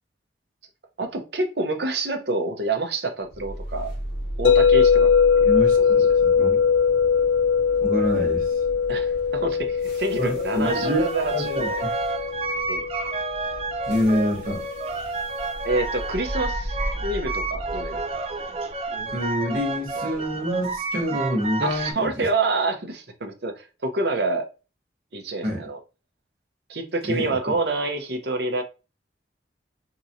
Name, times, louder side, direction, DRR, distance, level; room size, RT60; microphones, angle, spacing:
voice 1, 1.0-3.9 4.4-5.5 5.8-6.1 8.9-11.8 12.7-12.8 15.6-18.0 21.6-24.5 25.1-25.8 26.7-28.6, right 2 dB, 65° right, 0.8 m, -27 dB
sound 1, 3.3-21.4, right 1 dB, 55° left, 1.8 m, -37 dB
sound 2, 4.4-14.5, left 6 dB, 85° left, 0.5 m, -21 dB
voice 2, 5.4-6.6 7.8-8.6 10.2-11.0 11.3-11.9 13.9-14.6 19.1-22.2 25.4-25.7 27.1-27.5, equal, 50° right, 1.3 m, -27 dB
sound 3, 10.6-21.9, right 3 dB, 35° right, 0.4 m, -30 dB
3.7 x 3.0 x 2.7 m
head